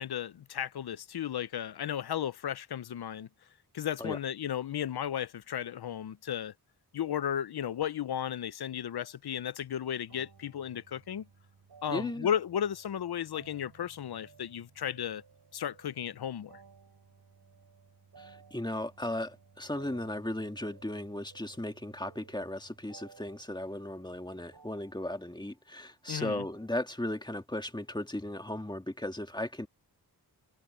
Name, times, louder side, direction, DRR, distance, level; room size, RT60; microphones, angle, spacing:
voice 1, 0.0-3.3 3.7-6.5 6.9-11.3 11.8-15.2 15.5-16.5 26.1-26.4, left 9 dB, 75° left, 0.7 m, -34 dB
sound 1, 10.1-26.7, right 5 dB, 70° right, 5.8 m, -58 dB
voice 2, 11.9-12.3 18.2-29.7, left 1 dB, 10° left, 2.1 m, -36 dB
cardioid pair, 65°, 39 cm